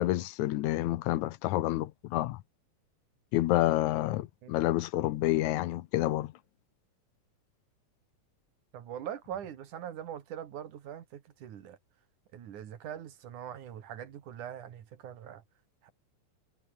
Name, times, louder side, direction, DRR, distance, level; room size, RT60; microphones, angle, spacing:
voice 1, 0.0-2.4 3.3-6.3, left 15 dB, 80° left, 2.2 m, -28 dB
voice 2, 8.7-11.8 12.3-15.4 15.8-15.9, right 10 dB, 90° right, 3.4 m, -42 dB
omnidirectional pair, 3.4 m